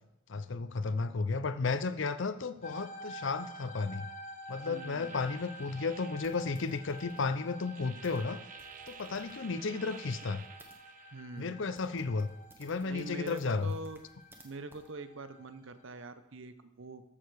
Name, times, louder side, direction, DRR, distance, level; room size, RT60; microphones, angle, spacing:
voice 1, 0.3-4.1 4.5-8.4 8.9-10.4 11.4-12.3 12.6-13.7, left 4 dB, 55° left, 13 dB, 0.5 m, -33 dB
sound 1, 2.6-16.1, equal, 35° left, 1.0 m, -49 dB
sound 2, 4.4-11.2, right 8 dB, 35° right, 0.3 m, -53 dB
voice 2, 4.7-5.2 11.1-11.6 12.8-14.0 14.4-17.0, right 2 dB, 60° right, 11 dB, 0.7 m, -44 dB
sound 3, 6.2-10.8 11.4-11.5 11.7-14.4 14.7-14.9, right 1 dB, 10° right, 1.1 m, -61 dB
13.5 x 6.8 x 4.7 m, 0.87 s
head